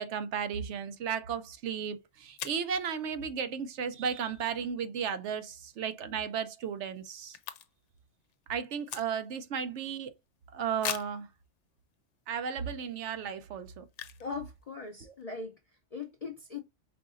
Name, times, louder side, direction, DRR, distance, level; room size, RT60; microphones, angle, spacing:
voice 1, 0.0-7.4 8.5-10.1 10.5-11.3 12.3-13.9, right 7 dB, 80° right, 1.0 m, -34 dB
sound 1, 1.7-1.8 2.4-2.7 5.7-5.9 6.2-6.3 6.5-8.0 8.2-9.5 10.0-10.1 10.8-11.3 11.9-12.0 12.5-12.7 13.9-14.3 14.6-14.7 14.9-15.2, left 9 dB, 90° left, 0.9 m, -40 dB
voice 2, 14.2-16.6, left 4 dB, 45° left, 0.6 m, -40 dB
4.8 x 3.7 x 2.5 m
omnidirectional pair, 1.2 m